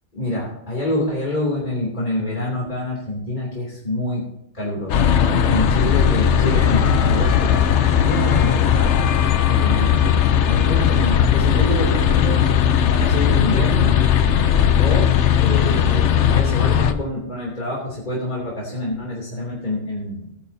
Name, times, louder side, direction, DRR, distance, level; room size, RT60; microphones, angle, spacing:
voice 1, 0.1-4.2 4.5-8.9 9.6-9.9 10.5-12.4 12.8-13.9 14.8-15.1 15.4-20.3, left 1 dB, 45° left, -5 dB, 3.1 m, -26 dB
sound 1, 4.9-16.9, left 8 dB, 90° left, 1.0 m, -17 dB
19.5 x 10.0 x 2.8 m, 0.79 s
omnidirectional pair, 1.1 m